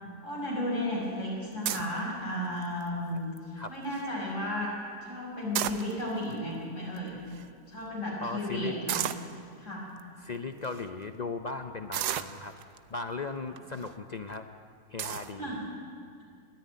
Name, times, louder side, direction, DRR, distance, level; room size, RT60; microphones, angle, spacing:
voice 1, 0.2-4.7 5.0-7.2 7.7-9.0 9.6-9.9 13.5-13.6 15.4-15.6, left 1 dB, 45° left, -4 dB, 6.3 m, -34 dB
sound 1, 1.6-2.0 2.6-2.9 3.4-3.5 3.7-4.0 5.3-6.2 7.0-7.1 7.3-7.4 8.9-9.3 10.0-10.1 10.6-10.8 11.9-12.8 13.6-13.9 14.3-14.4 15.0-15.3, right 11 dB, 75° right, 1.3 m, -33 dB
voice 2, 8.2-8.7 10.2-12.5 12.9-14.5 14.9-15.5, left 3 dB, 75° left, 8 dB, 0.4 m, -37 dB
20.0 x 14.0 x 9.5 m, 2.2 s
omnidirectional pair, 1.8 m